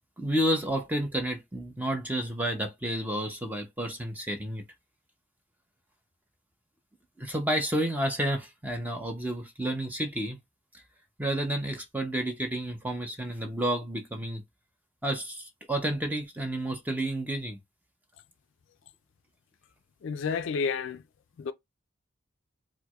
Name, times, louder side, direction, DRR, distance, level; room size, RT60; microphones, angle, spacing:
voice 1, 0.2-4.6 7.2-10.4 11.2-14.4 15.0-17.6, right 1 dB, 10° right, 0.6 m, -30 dB
voice 2, 20.0-21.0 21.4-21.5, left 5 dB, 60° left, 0.3 m, -30 dB
4.5 x 2.1 x 2.3 m
head